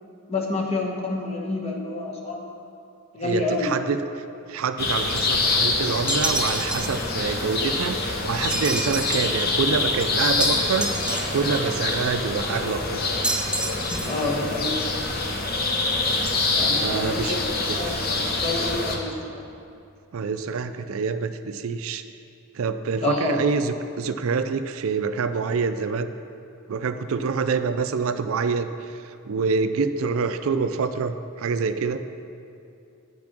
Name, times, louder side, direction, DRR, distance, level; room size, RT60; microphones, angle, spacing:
voice 1, 0.3-2.4 3.1-3.7 13.9-14.8 16.6-17.4 17.7-19.4 23.0-23.4, left 2 dB, 30° left, -2 dB, 1.2 m, -28 dB
voice 2, 3.2-4.0 4.5-13.0 16.8-17.4 17.7-17.9 20.1-22.0 22.5-26.1 26.7-32.0, right 5 dB, 70° right, 10 dB, 0.4 m, -26 dB
sound 1, 4.8-19.0, left 3 dB, 45° left, 0.9 m, -25 dB
sound 2, 6.1-7.1 8.5-9.4 10.4-11.6 13.2-14.2, right 2 dB, 5° right, 0.3 m, -29 dB
9.3 x 6.0 x 5.9 m, 2.6 s
head